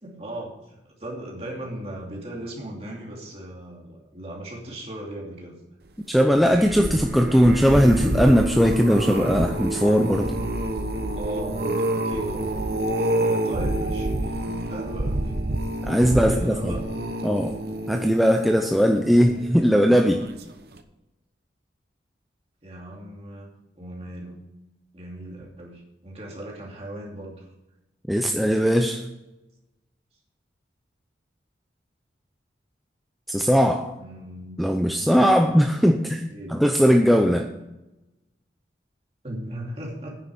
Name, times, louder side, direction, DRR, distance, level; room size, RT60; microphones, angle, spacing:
voice 1, 0.0-5.6 11.1-12.6 13.2-15.3 16.1-16.9 22.6-24.4 24.9-27.5 34.0-34.6 35.0-35.1 36.3-36.6 39.2-40.2, right 1 dB, 35° right, -2 dB, 2.7 m, -37 dB
voice 2, 6.1-10.4 15.8-16.8 17.2-17.6 17.9-20.2 28.1-29.0 33.3-33.9 34.6-36.2 36.5-37.5, equal, ahead, 3 dB, 0.6 m, -19 dB
sound 1, 6.3-19.7 20.2-20.5 20.8-20.9, right 1 dB, 55° right, 1.0 m, -28 dB
9.8 x 6.9 x 7.8 m, 0.94 s
head